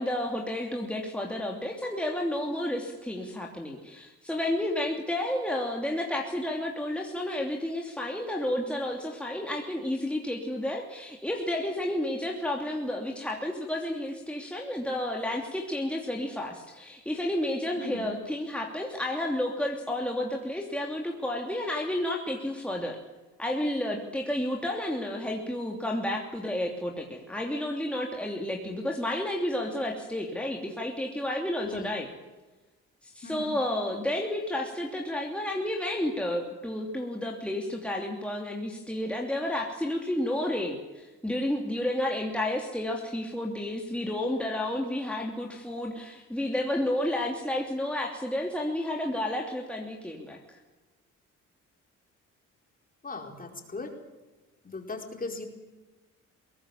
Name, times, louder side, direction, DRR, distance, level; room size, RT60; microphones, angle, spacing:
voice 1, 0.0-23.0 23.4-32.1 33.0-50.6, left 1 dB, 5° left, 0 dB, 3.0 m, -31 dB
voice 2, 17.8-18.1 31.6-31.9 33.2-33.6 53.0-53.9 54.6-55.5, left 3 dB, 30° left, 2 dB, 4.7 m, -38 dB
22.5 x 18.5 x 7.4 m, 1.2 s
cardioid pair, 90°, 30 cm